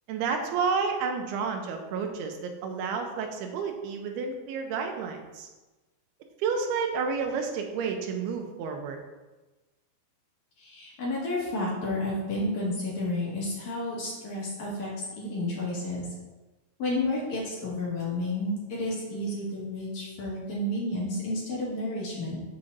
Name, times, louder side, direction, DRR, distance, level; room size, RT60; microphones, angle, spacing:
voice 1, 0.1-5.5 6.4-9.0, right 5 dB, 85° right, 4 dB, 2.7 m, -30 dB
voice 2, 10.6-16.1 16.8-22.4, left 1 dB, 55° left, -6 dB, 2.7 m, -31 dB
7.5 x 7.2 x 2.7 m, 1.2 s
omnidirectional pair, 4.4 m